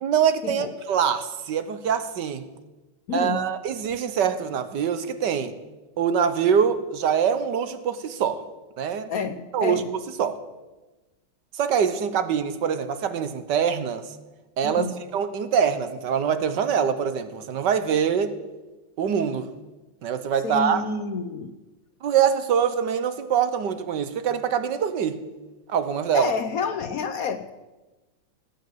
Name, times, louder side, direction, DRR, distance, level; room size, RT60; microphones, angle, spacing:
voice 1, 0.0-2.5 3.1-5.6 6.0-8.4 8.8-9.1 9.5-10.4 11.5-14.1 14.6-14.9 15.1-18.3 19.0-19.5 20.0-20.8 22.0-25.2 25.7-26.3, right 7 dB, 65° right, 11 dB, 1.5 m, -24 dB
voice 2, 3.1-3.4 9.1-9.9 14.6-14.9 20.4-21.5 26.1-27.5, left 5 dB, 60° left, 10 dB, 1.0 m, -29 dB
17.5 x 8.6 x 7.9 m, 1.1 s
omnidirectional pair, 2.1 m